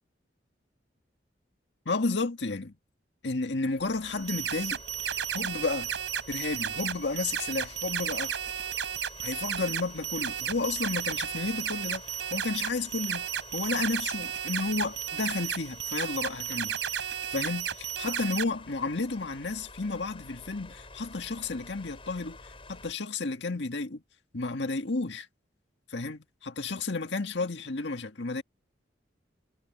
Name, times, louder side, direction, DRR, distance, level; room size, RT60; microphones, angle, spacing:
voice 1, 1.9-2.7 3.2-4.8 5.0-5.9 6.3-8.3 9.2-12.0 12.3-13.3 13.5-24.0 24.3-25.3 25.9-28.4, left 3 dB, 75° left, 1.8 m, -32 dB
sound 1, 3.8-22.9, left 3 dB, 30° left, 7.3 m, -50 dB
sound 2, 4.0-18.4, right 9 dB, 80° right, 3.5 m, -33 dB
head